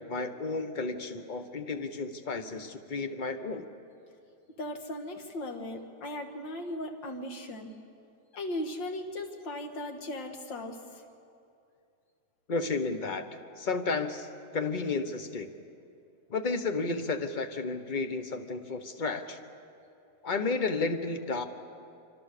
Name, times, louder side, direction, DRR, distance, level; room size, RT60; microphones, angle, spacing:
voice 1, 0.0-3.7 12.5-13.3 13.6-14.3 14.5-15.5 16.3-19.4 20.2-21.4, left 3 dB, 30° left, 7 dB, 1.1 m, -32 dB
voice 2, 4.6-7.7 8.3-11.0, left 1 dB, 70° left, 4 dB, 2.5 m, -37 dB
26.0 x 26.0 x 6.8 m, 2.5 s
omnidirectional pair, 2.1 m